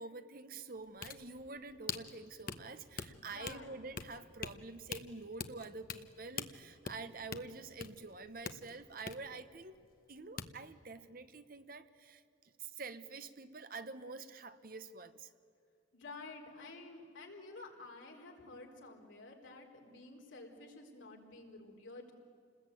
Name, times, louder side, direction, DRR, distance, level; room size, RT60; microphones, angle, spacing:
voice 1, 0.0-9.8 10.1-12.2 12.6-15.3, right 3 dB, 45° right, 11 dB, 1.1 m, -47 dB
sound 1, 0.8-10.1 10.4-10.5, left 6 dB, 45° left, 1.0 m, -45 dB
voice 2, 3.2-3.8 15.9-22.1, left 3 dB, 75° left, 1 dB, 4.2 m, -51 dB
28.5 x 20.5 x 9.2 m, 2.4 s
head